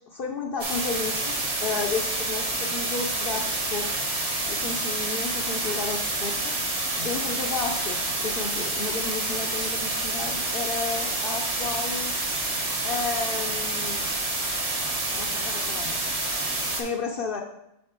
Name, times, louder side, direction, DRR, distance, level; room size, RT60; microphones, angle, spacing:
voice 1, 0.1-3.9 4.5-6.5 7.0-12.1 12.8-14.1 15.0-16.0 16.8-17.4, left 4 dB, 60° left, 1 dB, 0.8 m, -32 dB
sound 1, 0.6-16.8, right 2 dB, 35° right, 1.0 m, -28 dB
7.8 x 4.1 x 3.6 m, 0.84 s
omnidirectional pair, 1.1 m